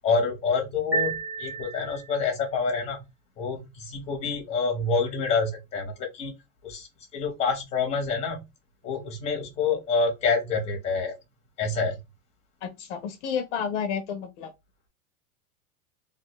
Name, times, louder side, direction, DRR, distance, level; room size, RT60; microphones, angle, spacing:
voice 1, 0.0-3.0 3.4-6.3 6.6-8.4 8.8-11.1 11.6-11.9, left 4 dB, 15° left, 0.8 m, -27 dB
sound 1, 0.9-2.4, right 3 dB, 5° right, 0.3 m, -31 dB
voice 2, 12.6-14.5, left 7 dB, 55° left, 0.6 m, -31 dB
2.6 x 2.2 x 4.0 m
supercardioid pair, 160°, 42 cm